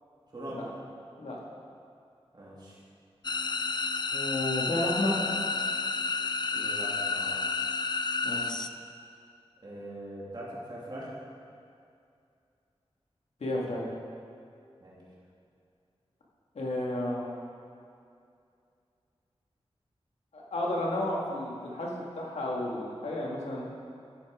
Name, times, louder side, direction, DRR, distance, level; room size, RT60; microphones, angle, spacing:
voice 1, 2.3-2.8 6.5-7.4 9.6-11.1 14.8-15.0, right 1 dB, 40° right, -6 dB, 2.6 m, -41 dB
sound 1, 3.2-8.7, left 4 dB, 45° left, 0.4 m, -30 dB
voice 2, 4.1-5.2 8.2-8.6 13.4-13.9 16.5-17.3 20.3-23.6, left 1 dB, 90° left, -4 dB, 2.1 m, -32 dB
12.5 x 7.2 x 5.0 m, 2.4 s
wide cardioid pair, 95°, 11 cm